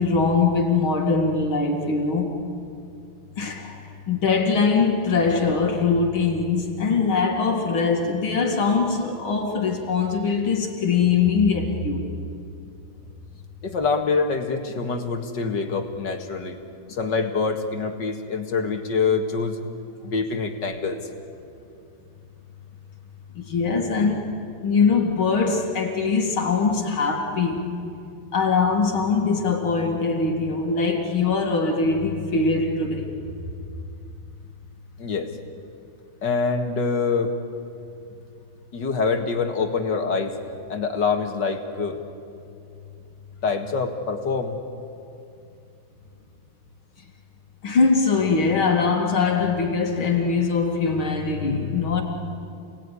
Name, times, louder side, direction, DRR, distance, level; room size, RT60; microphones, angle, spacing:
voice 1, 0.0-2.3 3.4-12.0 23.4-24.4 24.6-27.6 28.3-33.1 47.6-52.0, left 4 dB, 75° left, 2 dB, 2.8 m, -22 dB
voice 2, 13.6-16.6 16.9-19.6 20.0-21.0 35.0-35.3 36.2-37.3 38.7-40.4 40.7-42.0 43.4-44.6, left 4 dB, 60° left, 5 dB, 2.4 m, -25 dB
28.5 x 19.5 x 9.9 m, 2.6 s
omnidirectional pair, 2.3 m